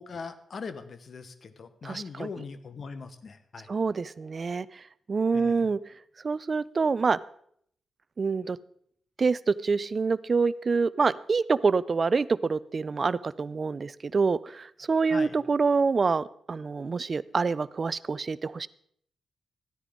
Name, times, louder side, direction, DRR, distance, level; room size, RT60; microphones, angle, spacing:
voice 1, 0.0-3.7 5.3-5.7 15.1-15.4, left 5 dB, 60° left, 12 dB, 1.0 m, -41 dB
voice 2, 1.8-2.3 3.7-4.7 5.1-5.8 6.2-7.2 8.2-8.6 9.2-18.7, right 4 dB, 50° right, 19 dB, 0.4 m, -26 dB
14.0 x 9.9 x 3.7 m, 0.67 s
supercardioid pair, 50°, 0 cm